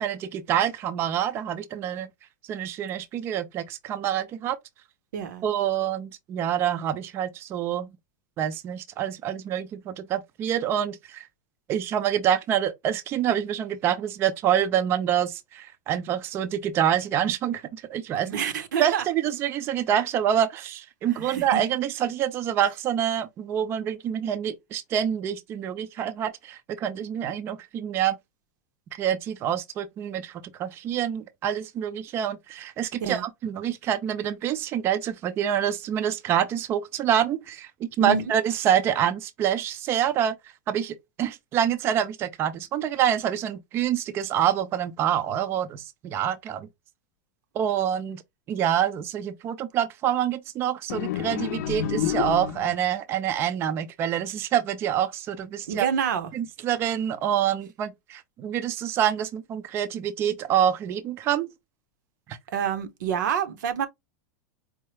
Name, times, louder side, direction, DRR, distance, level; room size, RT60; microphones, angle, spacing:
voice 1, 0.0-2.1 2.4-4.6 5.4-7.9 8.4-11.3 11.7-17.6 17.9-18.4 18.8-28.2 28.9-40.4 40.7-46.7 47.5-48.2 48.5-55.9 56.3-61.5 62.3-62.4, right 10 dB, 25° right, 0.4 m, -26 dB
voice 2, 5.1-5.4 18.2-19.0 21.2-21.6 33.0-33.2 38.0-38.3 55.7-56.3 62.5-63.9, right 7 dB, 85° right, 0.9 m, -27 dB
sound 1, 50.9-52.9, left 10 dB, 70° left, 0.5 m, -29 dB
4.5 x 2.0 x 3.1 m
supercardioid pair, 155°, 10 cm